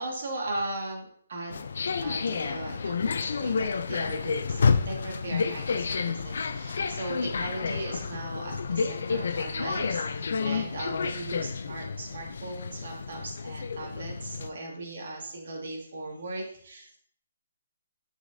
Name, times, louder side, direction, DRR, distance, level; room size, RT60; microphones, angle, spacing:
voice 1, 0.0-1.6 2.0-17.0, right 2 dB, 55° right, -2 dB, 2.0 m, -38 dB
sound 1, 1.5-14.5, left 5 dB, 60° left, 0.5 m, -30 dB
11.0 x 4.8 x 2.7 m, 0.62 s
hypercardioid pair, 175°, 0 cm